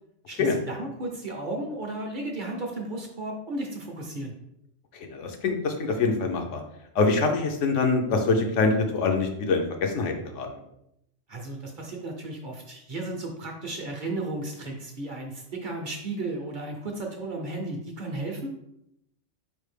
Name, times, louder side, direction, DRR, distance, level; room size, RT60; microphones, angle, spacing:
voice 1, 0.3-4.3 11.3-18.6, right 2 dB, 50° right, 1 dB, 0.7 m, -34 dB
voice 2, 5.1-6.6 6.9-10.5, left 3 dB, 80° left, 3 dB, 1.0 m, -24 dB
4.7 x 3.3 x 3.3 m, 0.80 s
omnidirectional pair, 1.3 m